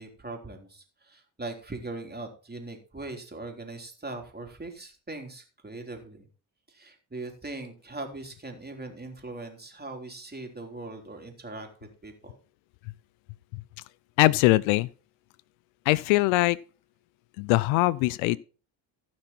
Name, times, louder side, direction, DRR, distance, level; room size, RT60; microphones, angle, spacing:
voice 1, 0.0-6.3 6.7-12.4, right 2 dB, 20° right, 3.7 m, -40 dB
voice 2, 14.2-14.9 15.9-16.6 17.4-18.4, left 20 dB, 75° left, 0.5 m, -22 dB
15.5 x 6.1 x 4.3 m
hypercardioid pair, 55°, 48 cm